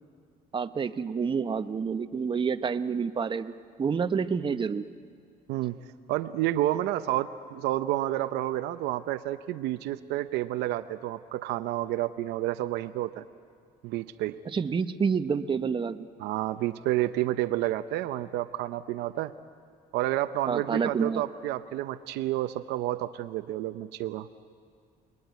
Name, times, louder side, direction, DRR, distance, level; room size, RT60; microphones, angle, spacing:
voice 1, 0.5-3.5 3.8-4.9 14.5-16.1 20.5-21.2, right 6 dB, 30° right, 10 dB, 0.9 m, -28 dB
voice 2, 6.1-13.2 13.8-14.4 16.2-19.3 19.9-24.3, right 14 dB, 90° right, 10 dB, 0.8 m, -30 dB
30.0 x 21.0 x 9.3 m, 2.1 s
cardioid pair, 110°, 17 cm